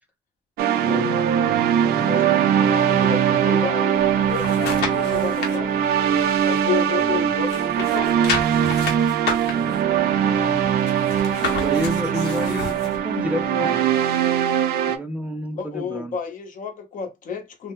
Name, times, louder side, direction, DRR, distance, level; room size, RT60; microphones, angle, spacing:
sound 1, 0.6-15.0, right 9 dB, 65° right, 0.5 m, -21 dB
voice 1, 0.8-1.6 1.9-5.9 6.4-8.4 15.5-17.7, left 7 dB, 50° left, 0.9 m, -32 dB
sound 2, 4.0-5.6 6.0-7.2 7.4-13.0 13.4-13.5, left 5 dB, 80° left, 1.0 m, -31 dB
voice 2, 7.0-7.3 9.6-9.8 10.2-10.8 11.4-13.8 14.9-16.1, equal, 10° right, 0.4 m, -30 dB
2.7 x 2.1 x 3.5 m
cardioid pair, 110°, 17 cm